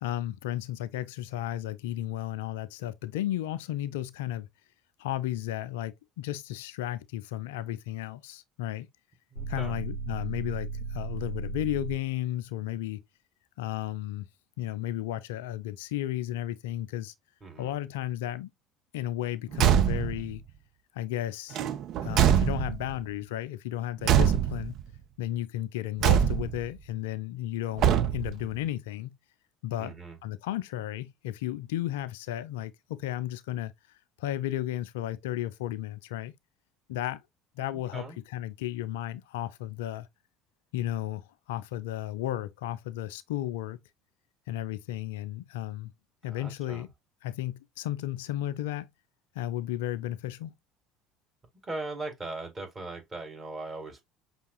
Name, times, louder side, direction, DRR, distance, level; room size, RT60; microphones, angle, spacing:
voice 1, 0.0-4.5 5.0-8.9 9.5-13.0 13.6-14.3 14.6-17.1 17.6-18.5 18.9-20.4 20.9-21.6 22.0-24.8 25.2-29.2 29.6-29.9 30.2-36.3 36.9-37.2 37.6-40.1 40.7-43.8 44.5-45.9 46.2-46.9 47.2-48.9 49.3-50.5, left 13 dB, 65° left, 0.3 m, -34 dB
voice 2, 9.3-9.8 17.4-17.7 29.8-30.2 37.7-38.2 46.3-46.9 51.6-54.0, right 2 dB, 25° right, 1.7 m, -39 dB
sound 1, 9.3-12.1, right 5 dB, 85° right, 1.4 m, -36 dB
Car / Truck / Slam, 19.5-20.3 21.5-23.0 24.0-24.8 26.0-26.7 27.8-28.5, right 9 dB, 50° right, 0.4 m, -24 dB
5.5 x 2.9 x 2.3 m
figure-of-eight pair, 60°, 0 cm